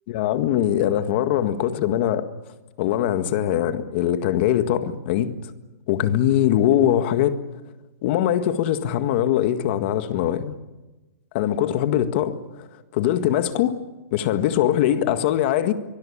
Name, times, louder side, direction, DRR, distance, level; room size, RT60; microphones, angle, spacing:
voice 1, 0.1-2.3 2.8-5.3 5.9-7.4 8.0-10.5 11.3-12.7 12.9-13.8 14.1-15.7, left 11 dB, 40° left, 1.8 m, -22 dB
24.0 x 20.5 x 8.6 m
hypercardioid pair, 155°, 9 cm